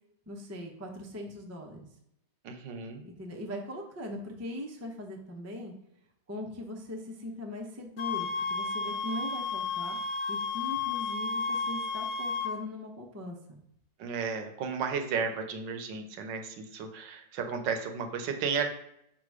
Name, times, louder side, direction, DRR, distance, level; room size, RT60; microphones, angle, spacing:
voice 1, 0.3-1.8 3.0-5.7 6.3-10.0 10.3-13.6, left 1 dB, 25° right, 1 dB, 0.3 m, -40 dB
voice 2, 2.4-3.0 14.0-18.7, right 6 dB, 75° right, 6 dB, 1.4 m, -33 dB
sound 1, 8.0-12.5, left 4 dB, 70° left, 1.3 m, -32 dB
5.4 x 3.8 x 4.8 m, 0.78 s
omnidirectional pair, 2.0 m